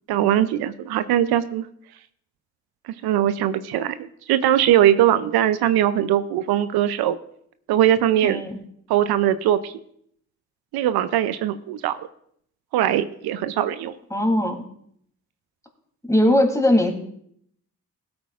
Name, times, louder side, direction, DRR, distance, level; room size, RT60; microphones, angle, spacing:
voice 1, 0.1-1.6 3.0-7.2 7.7-8.4 8.9-9.7 10.7-12.0 12.7-13.9, right 11 dB, 85° right, 13 dB, 0.5 m, -20 dB
voice 2, 8.2-8.6 14.1-14.6 16.1-16.9, left 1 dB, 10° left, 2 dB, 2.9 m, -19 dB
17.0 x 8.6 x 2.4 m, 0.69 s
supercardioid pair, 45°, 37 cm